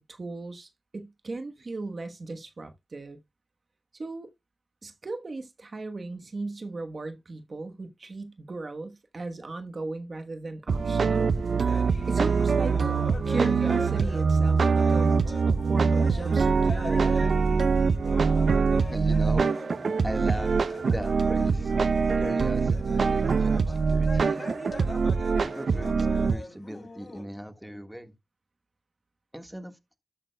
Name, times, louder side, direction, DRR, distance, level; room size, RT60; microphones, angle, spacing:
voice 1, 0.0-3.2 3.9-4.3 4.8-11.3 12.1-12.7 13.3-17.3, right 3 dB, 55° right, 1.2 m, -37 dB
sound 1, 10.7-26.3, right 5 dB, 75° right, 0.7 m, -24 dB
sound 2, 11.7-27.2, left 2 dB, 50° left, 5.1 m, -43 dB
voice 2, 18.8-19.8 20.0-20.6 20.9-21.7 22.2-24.5 25.4-28.1 29.3-29.8, equal, 10° right, 1.6 m, -38 dB
13.0 x 8.8 x 2.3 m
cardioid pair, 55°, 0 cm